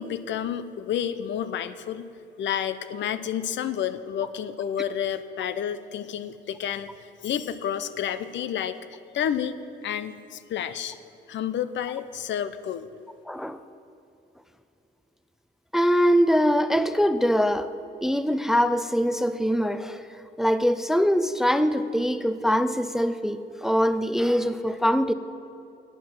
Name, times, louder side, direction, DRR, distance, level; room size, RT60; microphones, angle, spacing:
voice 1, 0.0-2.1 2.4-6.9 7.2-11.0 11.3-12.9, left 9 dB, 70° left, 13 dB, 0.6 m, -30 dB
voice 2, 13.3-13.6 15.7-17.7 18.0-20.0 20.4-25.1, equal, ahead, 12 dB, 0.4 m, -23 dB
9.2 x 8.4 x 7.5 m, 2.8 s
cardioid pair, 90°, 20 cm